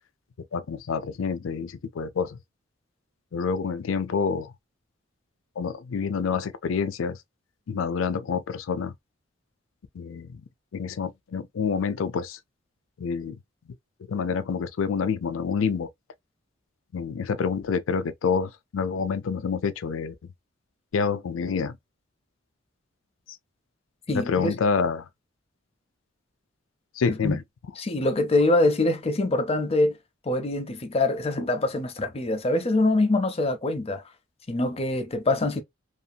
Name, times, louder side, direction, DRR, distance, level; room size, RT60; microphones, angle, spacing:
voice 1, 0.5-2.4 3.3-4.5 5.6-7.2 7.7-8.9 9.9-10.4 10.7-12.4 13.0-13.4 14.1-15.9 16.9-20.1 20.9-21.8 24.1-25.1 27.0-27.4, left 5 dB, 75° left, 0.4 m, -27 dB
voice 2, 24.1-24.6 27.1-27.4 27.8-30.0 30.3-34.0 34.5-35.6, left 2 dB, 30° left, 0.5 m, -24 dB
2.8 x 2.5 x 2.2 m
head